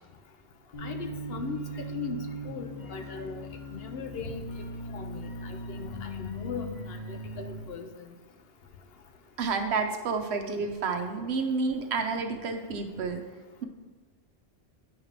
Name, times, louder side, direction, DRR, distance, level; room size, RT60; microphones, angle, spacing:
sound 1, 0.7-7.6, equal, 40° left, 1.1 m, -39 dB
voice 1, 0.8-2.2 2.4-3.4 3.7-4.4 4.9-7.9, left 5 dB, 65° left, 7 dB, 0.8 m, -39 dB
voice 2, 9.4-13.2, right 4 dB, 65° right, 5 dB, 1.0 m, -30 dB
9.3 x 3.2 x 5.1 m, 1.3 s
omnidirectional pair, 1.2 m